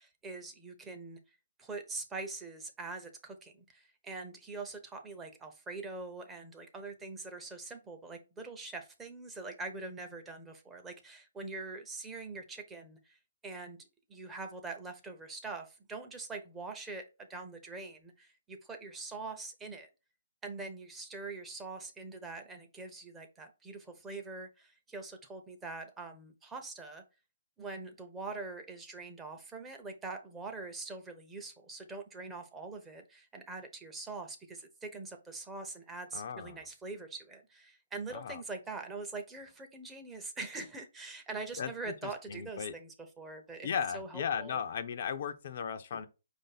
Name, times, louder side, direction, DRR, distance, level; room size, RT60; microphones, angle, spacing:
voice 1, 0.0-13.8 14.1-19.9 20.4-27.0 27.6-43.7 43.9-44.6, right 3 dB, 10° right, 0.6 m, -43 dB
voice 2, 36.1-36.6 38.1-38.4 41.6-41.7 42.3-42.7 43.6-46.1, left 7 dB, 50° left, 0.5 m, -36 dB
4.9 x 2.6 x 4.0 m
hypercardioid pair, 160°, 0 cm